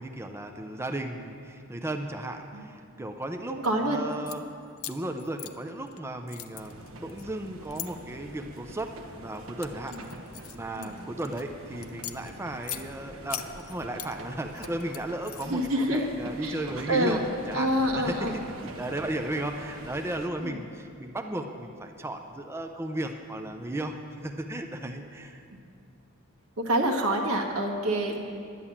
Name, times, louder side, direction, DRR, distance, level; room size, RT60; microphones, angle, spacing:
voice 1, 0.0-4.5 4.9-10.0 10.5-17.2 17.5-17.7 17.9-18.4 18.8-25.4, right 1 dB, 10° right, 5 dB, 0.5 m, -35 dB
voice 2, 3.5-4.0 9.9-10.0 10.8-11.0 15.4-16.0 16.4-16.6 16.9-17.3 17.5-18.3 20.4-20.6 24.8-24.9 26.6-28.2, right 1 dB, 85° right, 2 dB, 1.6 m, -27 dB
sound 1, 4.1-4.4 4.8-6.0 6.3-7.9 8.5-8.9 9.3-11.4 11.8-12.8 13.3-14.1 14.5-15.7, left 13 dB, 70° left, 0.6 m, -40 dB
sound 2, 6.6-20.3, right 1 dB, 70° right, 1.1 m, -45 dB
11.0 x 9.8 x 7.2 m, 2.4 s
head